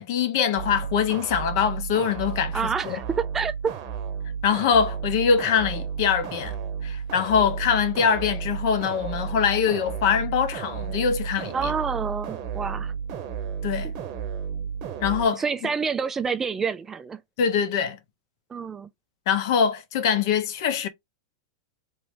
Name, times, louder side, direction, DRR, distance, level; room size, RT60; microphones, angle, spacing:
voice 1, 0.0-3.0 4.4-6.6 6.8-11.7 13.6-13.9 15.0-15.4 17.4-18.0 19.3-20.9, left 7 dB, 60° left, 0.7 m, -23 dB
sound 1, 0.6-15.3, right 7 dB, 45° right, 0.8 m, -33 dB
voice 2, 2.5-3.7 11.5-12.9 13.8-13.9 15.3-17.2 18.5-18.9, right 5 dB, 15° right, 0.3 m, -28 dB
3.1 x 2.6 x 3.2 m
hypercardioid pair, 135°, 2 cm